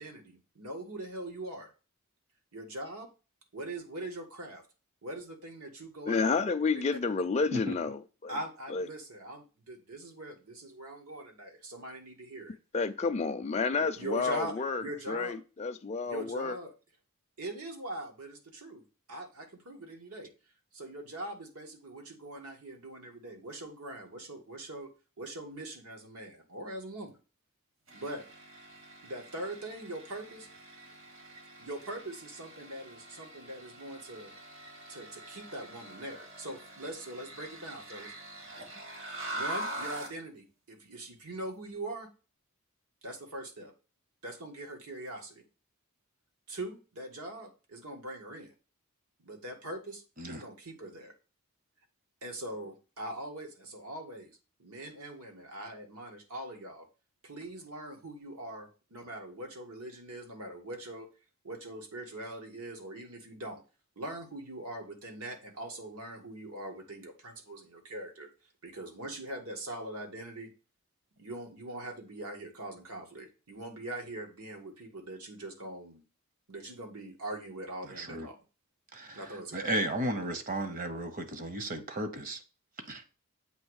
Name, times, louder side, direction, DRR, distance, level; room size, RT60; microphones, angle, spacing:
voice 1, 0.0-1.7 2.5-3.1 3.5-4.6 5.0-6.3 6.9-7.0 8.3-12.6 13.8-15.4 16.0-16.7 17.4-18.8 19.1-20.3 20.7-24.9 25.2-27.2 27.9-28.2 29.0-30.5 31.6-34.3 34.9-38.1 39.3-42.1 43.0-43.7 44.2-45.4 46.5-48.5 49.2-51.1 52.2-56.9 57.2-61.1 61.4-63.6 64.0-68.3 68.6-70.5 71.2-76.0 76.5-78.4 79.1-79.7, right 1 dB, 85° right, 1.7 m, -42 dB
voice 2, 6.1-8.3 8.7-8.9 12.7-16.6, left 4 dB, 30° left, 0.4 m, -30 dB
sound 1, 27.9-40.2, right 1 dB, 65° right, 2.1 m, -44 dB
voice 3, 77.9-78.3 78.9-79.2 79.5-82.4 82.8-83.0, right 1 dB, 40° right, 0.9 m, -34 dB
7.9 x 3.0 x 6.3 m
head